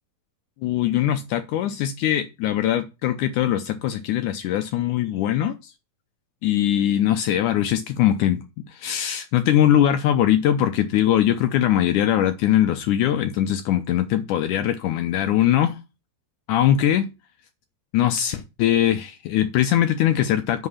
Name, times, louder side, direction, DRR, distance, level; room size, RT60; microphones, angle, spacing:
voice 1, 0.6-5.7 6.4-8.4 8.7-15.8 16.5-17.1 17.9-20.7, left 11 dB, 75° left, 1.9 m, -21 dB
9.9 x 4.8 x 5.6 m
omnidirectional pair, 4.1 m